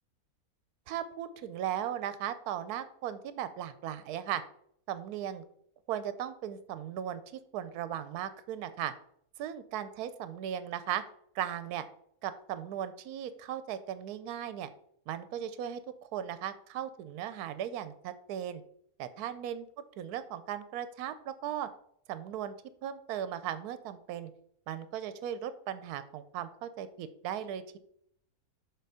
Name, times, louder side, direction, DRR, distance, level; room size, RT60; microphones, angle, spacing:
voice 1, 0.9-4.4 4.9-5.4 5.9-8.9 9.4-11.0 11.3-11.9 12.2-14.7 15.1-15.8 16.1-18.6 19.0-19.7 20.0-21.7 22.1-22.5 22.8-24.3 24.7-27.8, right 10 dB, 80° right, 13 dB, 1.1 m, -37 dB
6.8 x 4.0 x 4.7 m, 0.68 s
omnidirectional pair, 1.6 m